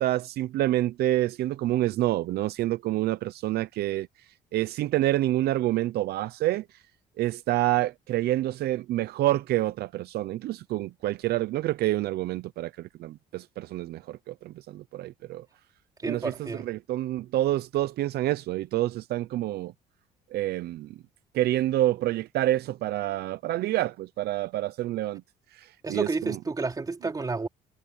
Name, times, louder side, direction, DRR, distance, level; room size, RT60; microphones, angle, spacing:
voice 1, 0.0-4.1 4.5-6.6 7.2-15.4 16.1-19.7 20.3-20.9 21.3-25.2 25.5-26.1, right 15 dB, 70° right, 0.7 m, -27 dB
voice 2, 16.0-16.7 25.8-27.5, right 3 dB, 20° right, 3.6 m, -30 dB
cardioid pair, 110°, 17 cm